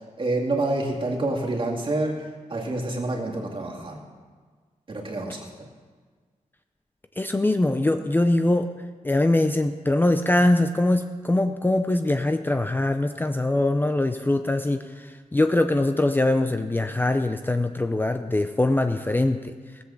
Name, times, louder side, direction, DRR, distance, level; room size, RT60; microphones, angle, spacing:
voice 1, 0.2-2.2 2.5-4.0 4.9-5.5, right 2 dB, 40° right, -1 dB, 2.3 m, -27 dB
voice 2, 7.2-8.7 9.0-19.5, left 2 dB, 15° left, 7 dB, 0.5 m, -22 dB
16.5 x 7.9 x 7.1 m, 1.5 s
wide cardioid pair, 120°, 13 cm